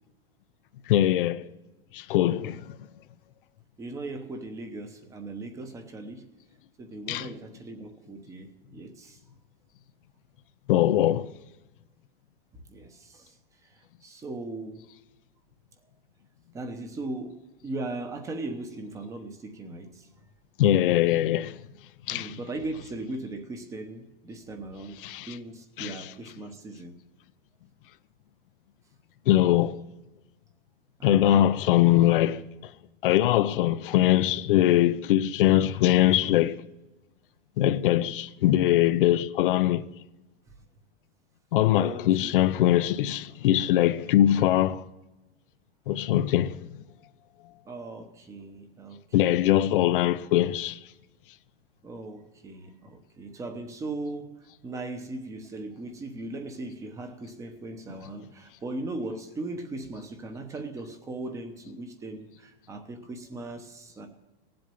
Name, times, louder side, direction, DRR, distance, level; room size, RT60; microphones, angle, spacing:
voice 1, 0.9-1.5 1.9-2.8 7.1-7.3 10.7-11.3 20.6-21.6 22.1-22.4 25.0-25.3 25.8-26.0 29.3-29.8 31.0-32.4 33.0-36.6 37.6-39.8 41.5-44.8 45.9-46.6 49.1-50.8, left 13 dB, 60° left, 0.7 m, -22 dB
voice 2, 2.3-2.6 3.8-6.2 6.8-9.2 12.7-13.3 13.6-14.9 16.5-20.1 22.1-26.9 31.0-31.6 41.7-42.3 47.6-49.8 51.8-64.1, right 2 dB, 10° right, 0.9 m, -38 dB
18.0 x 7.8 x 6.9 m
supercardioid pair, 175°, 30 cm